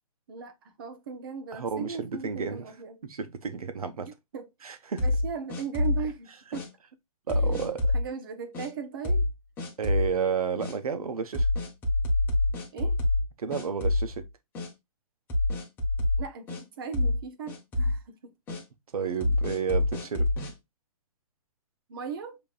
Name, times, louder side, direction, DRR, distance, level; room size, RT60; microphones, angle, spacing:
voice 1, 0.3-3.0 4.1-6.7 7.3-9.3 12.7-13.0 16.2-18.3 21.9-22.4, right 6 dB, 40° right, 0.9 m, -38 dB
voice 2, 1.5-2.6 3.0-4.1 4.6-5.0 7.3-7.9 9.8-11.5 13.4-14.2 18.9-20.3, right 6 dB, 90° right, 1.0 m, -31 dB
sound 1, 5.0-6.1 6.5-6.7 7.3-8.0 8.5-8.7 9.0-9.3 9.6-10.1 10.6-10.7 11.3-13.3 13.5-14.2 14.5-14.7 15.3-16.6 16.9-17.2 17.5-18.0 18.5-18.6 19.2-20.5, left 2 dB, 10° left, 0.9 m, -26 dB
7.1 x 3.0 x 2.4 m
hypercardioid pair, 170°, 18 cm